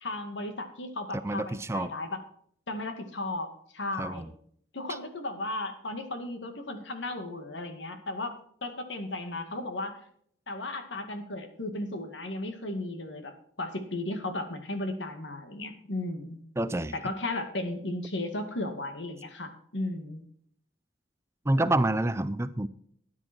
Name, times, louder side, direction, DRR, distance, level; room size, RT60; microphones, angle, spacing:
voice 1, 0.0-2.2 2.7-4.3 4.7-10.0 10.5-16.4 17.0-20.2, left 2 dB, 85° left, 7 dB, 2.1 m, -35 dB
voice 2, 1.2-1.9 4.0-4.3 16.6-16.9 21.5-22.7, right 1 dB, 15° right, 14 dB, 0.5 m, -27 dB
13.0 x 9.9 x 4.5 m, 0.64 s
head